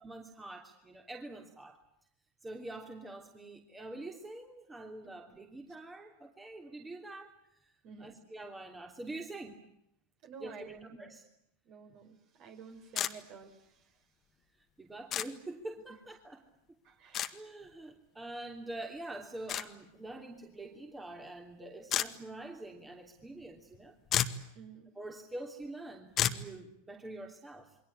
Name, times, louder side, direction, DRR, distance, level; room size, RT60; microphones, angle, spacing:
voice 1, 0.0-1.8 2.4-7.7 8.0-9.6 10.4-11.2 14.8-16.4 17.3-23.9 24.9-27.8, right 2 dB, 10° right, 3 dB, 3.2 m, -45 dB
voice 2, 10.2-11.2 11.6-13.9 16.8-17.4 24.5-24.9, right 6 dB, 45° right, 5 dB, 5.9 m, -51 dB
sound 1, 13.0-13.1 15.1-15.3 17.1-17.3 19.5-19.7 21.9-22.1 23.7-23.8 24.1-24.4 26.2-26.4, left 10 dB, 30° left, 1.9 m, -30 dB
29.0 x 23.5 x 8.6 m, 0.78 s
figure-of-eight pair, 90°, 0 cm